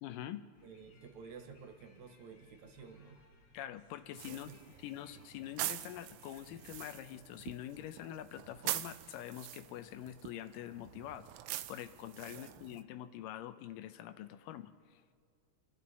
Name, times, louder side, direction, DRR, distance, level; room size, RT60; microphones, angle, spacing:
voice 1, 0.0-0.4 3.5-4.5 4.8-11.3 11.7-15.0, left 12 dB, 85° left, 11 dB, 2.3 m, -45 dB
sound 1, 0.5-6.9, left 2 dB, 60° left, 2.0 m, -65 dB
voice 2, 0.6-3.2 4.1-4.6 12.3-12.8, right 5 dB, 65° right, 6 dB, 2.3 m, -53 dB
sound 2, 4.2-12.8, right 15 dB, 85° right, 1.7 m, -44 dB
27.5 x 10.0 x 4.2 m, 2.2 s
omnidirectional pair, 3.8 m